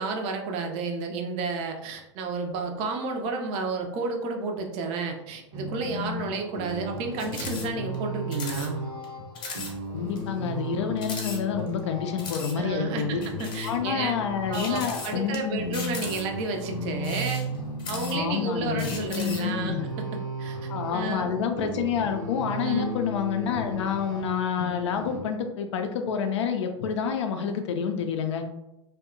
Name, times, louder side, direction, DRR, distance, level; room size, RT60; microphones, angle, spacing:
voice 1, 0.0-8.8 12.6-14.1 14.5-17.5 17.9-21.4 22.6-23.0, right 3 dB, 40° right, 3 dB, 0.4 m, -31 dB
sound 1, 5.5-25.2, equal, 70° right, 0.9 m, -35 dB
sound 2, 7.2-7.7 7.9-8.0 8.3-8.7 9.0-9.1 9.3-9.7 10.2-10.3 11.0-11.8 12.2-12.5 13.2-13.8 14.5-15.4 15.7-16.4 16.9-18.4 18.8-19.5, left 4 dB, 30° left, 0.8 m, -37 dB
voice 2, 9.9-13.2 13.6-15.8 18.1-19.9 20.7-28.4, left 7 dB, 65° left, 5 dB, 0.4 m, -28 dB
2.7 x 2.1 x 2.4 m, 0.93 s
hypercardioid pair, 95°, 16 cm